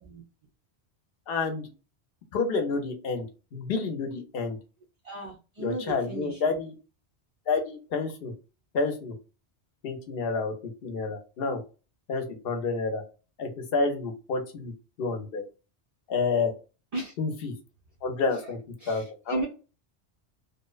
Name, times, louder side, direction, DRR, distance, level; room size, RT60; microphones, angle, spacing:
voice 1, 1.3-1.7 2.3-3.3 3.5-4.6 5.6-6.7 7.5-8.3 8.7-9.1 9.8-10.5 10.8-11.6 12.1-13.0 13.4-14.7 15.0-15.4 16.1-16.5 17.2-17.5 18.0-18.6 18.9-19.5, left 4 dB, 65° left, 6 dB, 0.8 m, -29 dB
voice 2, 5.0-6.5 16.9-17.1 18.8-19.5, right 2 dB, 50° right, 0 dB, 0.5 m, -35 dB
2.6 x 2.0 x 2.3 m, 0.32 s
omnidirectional pair, 1.2 m